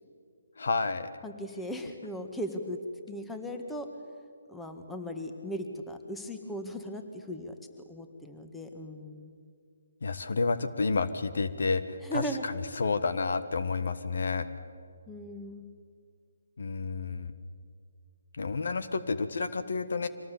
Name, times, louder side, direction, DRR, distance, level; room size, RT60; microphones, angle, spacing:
voice 1, 0.6-1.1 10.0-14.5 16.6-17.3 18.3-20.1, left 4 dB, 65° left, 11 dB, 1.3 m, -30 dB
voice 2, 1.2-2.8 3.1-3.9 4.5-7.5 7.9-9.3 12.0-12.4 15.1-15.7, equal, 5° left, 5 dB, 1.7 m, -38 dB
25.0 x 18.5 x 8.5 m, 2.2 s
figure-of-eight pair, 150°, 0 cm